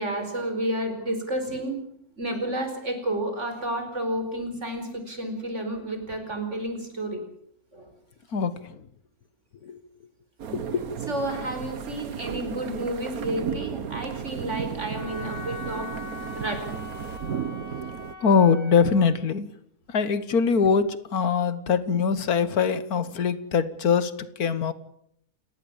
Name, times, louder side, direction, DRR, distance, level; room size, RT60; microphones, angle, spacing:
voice 1, 0.0-1.8 2.2-7.2 7.7-7.9 11.1-15.9 16.4-16.6, right 1 dB, 50° right, 7 dB, 5.2 m, -31 dB
sound 1, 10.4-18.1, right 8 dB, 75° right, 1.6 m, -34 dB
voice 2, 10.5-10.8 18.2-19.5 19.9-24.1 24.4-24.7, left 6 dB, 80° left, 14 dB, 1.9 m, -22 dB
Wind instrument woodwind instrument, 14.9-19.2, left 5 dB, 25° right, 3.6 m, -41 dB
28.5 x 19.0 x 7.3 m, 0.68 s
omnidirectional pair, 1.6 m